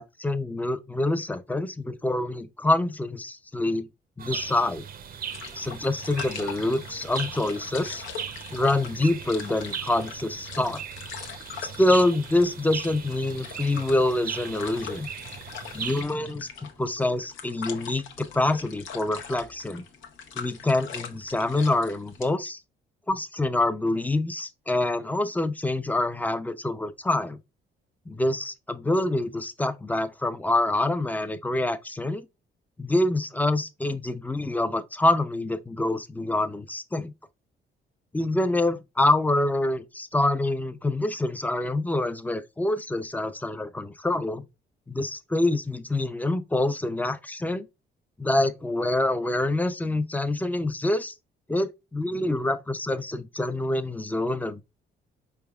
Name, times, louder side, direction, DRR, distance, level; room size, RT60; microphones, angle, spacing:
voice 1, 0.2-3.9 4.2-4.9 5.5-8.0 8.5-10.8 11.6-15.1 15.7-16.5 16.8-19.8 20.4-22.6 23.1-27.4 28.1-32.3 32.8-37.1 38.1-44.4 44.9-47.7 48.2-51.1 51.5-54.6, left 2 dB, 10° left, 0.4 m, -26 dB
sound 1, 4.2-16.0, right 7 dB, 50° right, 0.5 m, -38 dB
sound 2, 5.3-22.3, left 7 dB, 80° left, 0.7 m, -41 dB
4.6 x 3.4 x 2.3 m
cardioid pair, 90°, 20 cm